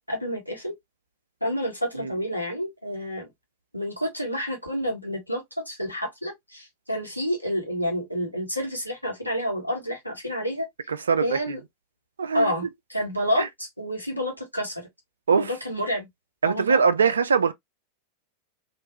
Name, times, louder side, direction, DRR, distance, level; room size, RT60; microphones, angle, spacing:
voice 1, 0.1-0.7 1.4-3.3 3.7-10.7 11.2-11.6 12.3-14.9 15.3-16.1 16.4-16.8, equal, 90° left, 1.4 m, -29 dB
voice 2, 10.9-11.5 12.2-12.5 13.4-13.5 15.3-15.5 16.4-17.5, right 6 dB, 70° right, 0.4 m, -22 dB
3.0 x 2.6 x 3.0 m
figure-of-eight pair, 90°, 0 cm